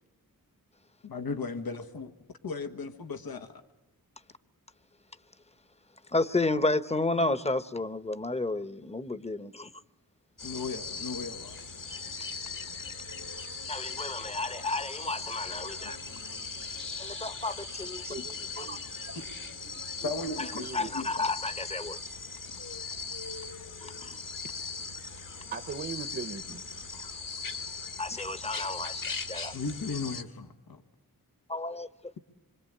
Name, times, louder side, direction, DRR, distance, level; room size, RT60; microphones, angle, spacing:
voice 1, 1.0-2.1 2.4-3.6 10.4-11.6 18.2-18.3 19.1-19.2 20.0-21.2 29.5-30.8, left 4 dB, 85° left, 1.4 m, -36 dB
voice 2, 6.1-9.7 13.7-16.0 16.8-18.0 18.6-18.7 20.7-22.0 23.8-24.2 28.0-29.5 31.5-31.9, left 2 dB, 20° left, 0.9 m, -31 dB
sound 1, 10.4-30.2, left 4 dB, 65° left, 1.7 m, -39 dB
voice 3, 18.0-18.8 19.6-20.1 20.6-21.1 25.5-26.6, right 5 dB, 40° right, 1.0 m, -40 dB
26.0 x 24.5 x 8.8 m
wide cardioid pair, 95°, 36 cm